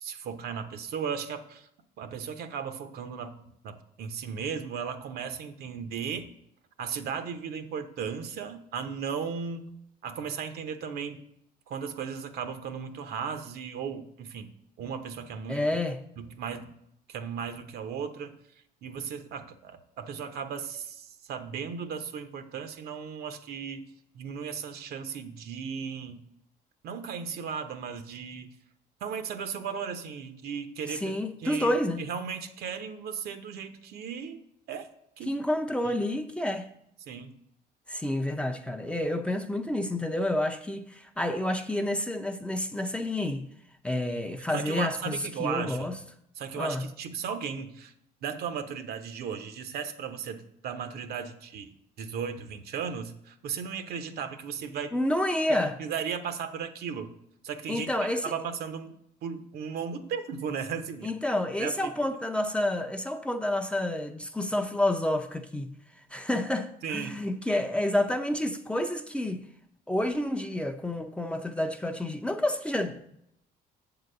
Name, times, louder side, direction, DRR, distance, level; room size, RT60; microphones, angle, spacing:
voice 1, 0.0-1.7 2.0-3.4 3.6-6.3 6.8-9.7 10.0-11.2 11.7-14.5 14.8-15.7 16.2-16.7 17.1-18.4 18.8-23.9 24.1-26.2 26.8-28.5 29.0-31.1 31.4-31.7 32.0-34.9 35.2-35.4 37.1-37.3 44.5-45.9 46.4-47.9 48.2-54.9 55.8-57.1 57.4-57.9 58.2-61.1 61.6-61.9 66.8-67.2, right 6 dB, 65° right, 0.8 m, -36 dB
voice 2, 15.5-16.0 30.9-32.1 35.3-36.7 37.9-43.5 43.8-45.9 46.5-46.8 54.9-55.8 57.7-58.3 61.0-65.7 66.1-69.4 69.9-73.2, left 1 dB, 5° left, 0.5 m, -29 dB
7.3 x 3.9 x 6.7 m
cardioid pair, 110°, 17 cm